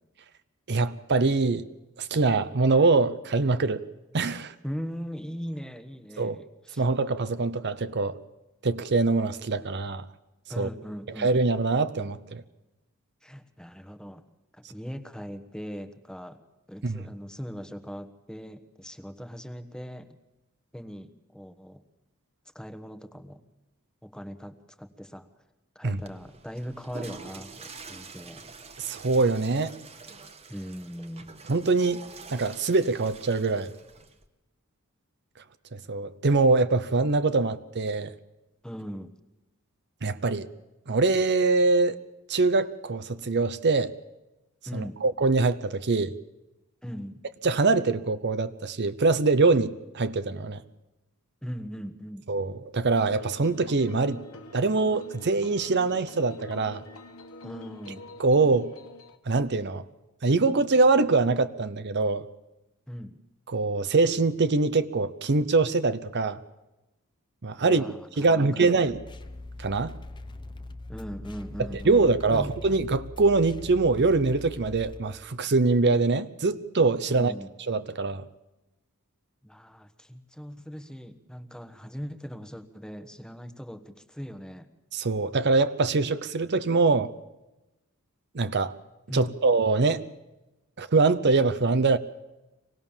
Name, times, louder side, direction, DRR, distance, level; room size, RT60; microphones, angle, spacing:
voice 1, 0.7-1.7 2.0-3.8 4.1-4.5 6.2-6.4 6.8-8.2 8.6-10.0 10.6-10.7 11.2-12.4 16.8-17.0 25.8-26.0 28.8-29.7 31.5-32.0 32.3-33.7 35.7-38.1 40.0-40.5 40.9-42.0 42.3-43.9 44.7-46.1 47.4-50.6 52.3-54.2 54.5-56.8 58.2-58.7 59.3-59.8 60.2-62.2 63.5-66.4 67.4-67.8 68.2-69.0 69.6-70.0 71.9-77.3 77.7-78.2 84.9-87.1 88.3-88.7 89.1-90.0 90.8-92.0, right 3 dB, 50° right, 12 dB, 0.7 m, -23 dB
voice 2, 4.6-6.8 10.5-11.3 13.2-14.2 14.5-16.4 16.7-20.2 20.7-21.8 22.5-23.4 24.0-25.3 25.7-28.5 30.5-31.3 38.6-39.1 44.6-45.0 46.8-47.2 51.4-52.3 57.4-58.0 62.9-63.2 67.6-68.8 70.9-72.5 77.1-77.5 79.4-84.7 89.1-89.4, equal, 5° left, 9 dB, 1.3 m, -39 dB
Water / Toilet flush, 25.9-34.3, right 4 dB, 30° right, 1.4 m, -46 dB
sound 1, 52.9-59.2, left 3 dB, 75° left, 1.6 m, -45 dB
sound 2, 68.9-75.0, left 2 dB, 20° left, 0.9 m, -42 dB
25.0 x 18.5 x 7.2 m, 1.0 s
head